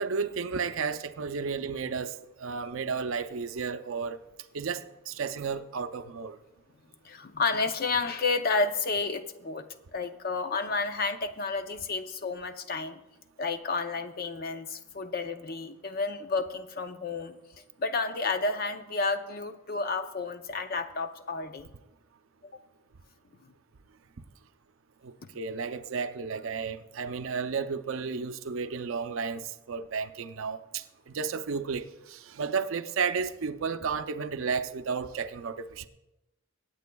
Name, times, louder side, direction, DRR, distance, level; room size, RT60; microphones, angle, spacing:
voice 1, 0.0-4.2 4.5-6.4 25.0-35.9, right 5 dB, 70° right, 0.5 m, -33 dB
voice 2, 7.0-9.7 9.9-13.0 13.4-17.4 17.8-21.7 22.4-22.6 23.4-23.5 25.2-25.3, left 4 dB, 45° left, 0.6 m, -31 dB
23.0 x 9.0 x 2.3 m
head